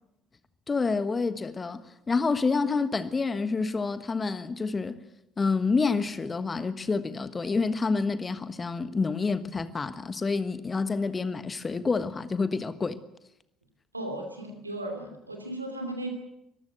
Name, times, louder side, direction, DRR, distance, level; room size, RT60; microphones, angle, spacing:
voice 1, 0.7-5.0 5.4-13.0, left 4 dB, 25° left, 1.4 m, -28 dB
voice 2, 13.9-16.1, right 1 dB, 85° right, 2.8 m, -36 dB
23.5 x 15.0 x 7.8 m
figure-of-eight pair, 55°, 0 cm